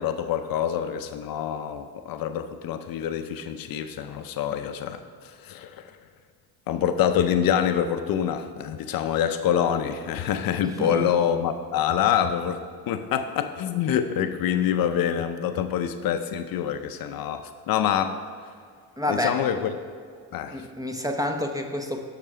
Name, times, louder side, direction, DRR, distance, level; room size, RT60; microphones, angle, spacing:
voice 1, 0.0-5.9 6.7-12.6 12.9-18.2 19.1-19.7 20.3-20.7, left 9 dB, 55° left, 9 dB, 0.6 m, -26 dB
voice 2, 10.6-11.1 19.0-19.4 20.5-22.0, left 1 dB, 10° right, 4 dB, 0.7 m, -29 dB
6.7 x 6.6 x 4.8 m, 2.1 s
supercardioid pair, 80°, 42 cm